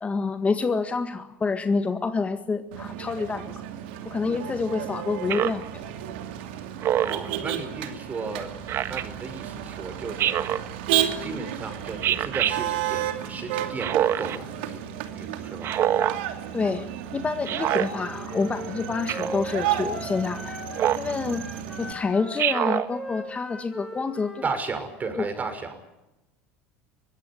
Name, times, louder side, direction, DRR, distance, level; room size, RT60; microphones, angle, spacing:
voice 1, 0.0-3.5 4.1-5.9 16.5-16.9 17.1-20.6 21.0-21.4 21.8-24.5 25.1-25.2, left 4 dB, 25° left, 8 dB, 1.7 m, -28 dB
Motor vehicle (road), 2.7-21.9, right 11 dB, 75° right, 2.7 m, -32 dB
Speech synthesizer, 5.3-5.7 6.8-7.3 8.7-9.0 10.2-10.7 12.0-12.5 13.8-14.4 15.6-16.2 17.5-17.9 19.1-19.4 20.8-21.1 22.4-22.9, right 11 dB, 50° right, 1.4 m, -24 dB
voice 2, 7.0-8.5 8.9-10.5 11.2-14.8 15.1-15.7 24.4-25.8, right 4 dB, 30° right, 8 dB, 5.8 m, -34 dB
Wind instrument woodwind instrument, 17.9-21.0 21.3-24.6, left 1 dB, 5° left, 7.2 m, -39 dB
23.0 x 16.5 x 9.9 m, 0.98 s
hypercardioid pair, 90°, 6 cm